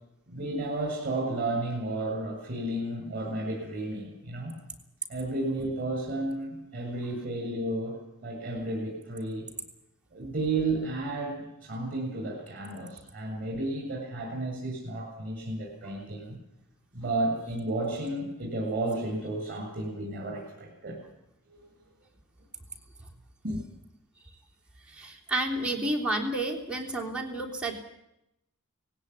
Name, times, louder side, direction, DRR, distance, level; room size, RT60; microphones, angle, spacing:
voice 1, 0.3-4.6 5.1-9.5 10.1-16.4 16.9-21.0 21.5-21.6 23.4-23.6, right 2 dB, 40° right, 1 dB, 7.5 m, -32 dB
voice 2, 24.9-27.7, right 1 dB, 5° right, -2 dB, 3.4 m, -30 dB
19.5 x 17.0 x 9.8 m, 0.84 s
head